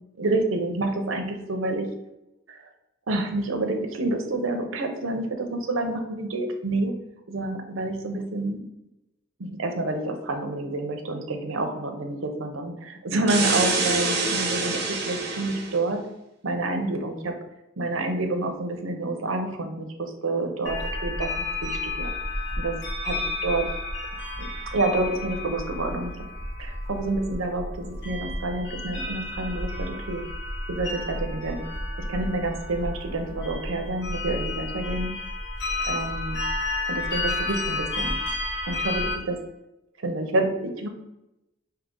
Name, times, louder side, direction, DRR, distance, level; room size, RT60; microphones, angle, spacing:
voice 1, 0.2-1.9 2.5-2.7 3.1-6.9 7.3-8.6 9.4-16.0 16.4-17.3 17.8-21.3 21.6-22.1 22.6-22.7 23.0-23.6 24.4-26.1 26.6-30.2 30.7-31.6 32.1-35.1 35.9-36.4 36.9-38.1 38.7-39.4 40.0-40.9, right 2 dB, 80° right, 4 dB, 0.7 m, -28 dB
sound 1, 13.3-15.8, right 3 dB, 55° right, 1.1 m, -26 dB
sound 2, 20.7-39.2, left 2 dB, 55° left, 1.0 m, -31 dB
5.0 x 2.8 x 3.8 m, 0.92 s
head